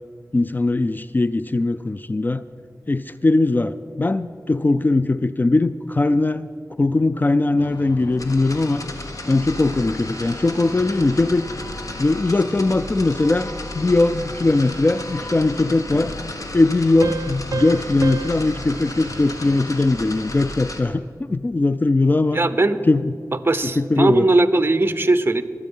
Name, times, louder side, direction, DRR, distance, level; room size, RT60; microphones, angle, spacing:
voice 1, 0.3-2.4 2.9-6.5 6.8-8.8 9.3-11.4 12.0-16.1 16.5-21.0 21.3-22.4 22.9-23.1 23.6-24.3, left 2 dB, 30° left, 13 dB, 0.3 m, -20 dB
sound 1, 7.6-20.5, left 3 dB, 85° left, 0.7 m, -40 dB
sound 2, 8.1-20.8, left 1 dB, 60° left, 1.5 m, -34 dB
sound 3, 17.0-20.3, right 5 dB, 65° right, 0.4 m, -33 dB
voice 2, 22.3-22.8 23.4-25.4, right 2 dB, 35° right, 12 dB, 0.7 m, -19 dB
21.5 x 7.9 x 5.4 m, 2.2 s
wide cardioid pair, 65°, 7 cm